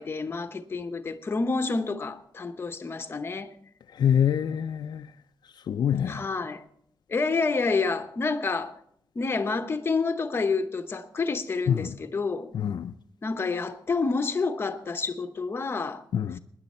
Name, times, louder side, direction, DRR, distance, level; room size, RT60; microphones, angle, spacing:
voice 1, 0.0-3.5 6.0-6.6 7.1-8.8 9.1-12.5 13.2-16.0, left 4 dB, 30° left, 0.9 m, -28 dB
voice 2, 4.0-5.1 5.7-6.2 11.7-11.9 12.5-12.9 16.1-16.4, left 8 dB, 65° left, 0.5 m, -25 dB
18.5 x 10.5 x 4.3 m
wide cardioid pair, 170°, 8 cm